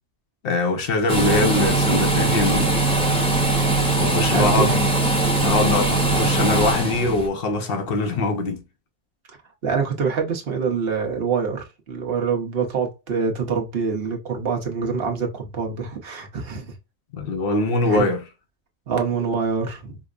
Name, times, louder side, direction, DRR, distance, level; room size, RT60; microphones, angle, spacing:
voice 1, 0.4-2.7 4.0-4.9 5.4-8.6 17.1-18.2, left 3 dB, 55° left, 0.8 m, -22 dB
sound 1, 1.1-7.3, right 2 dB, 5° left, 0.8 m, -20 dB
voice 2, 4.3-4.8 9.6-16.7 17.9-18.1 18.9-20.0, right 5 dB, 55° right, 1.0 m, -25 dB
5.0 x 2.1 x 2.4 m
omnidirectional pair, 1.2 m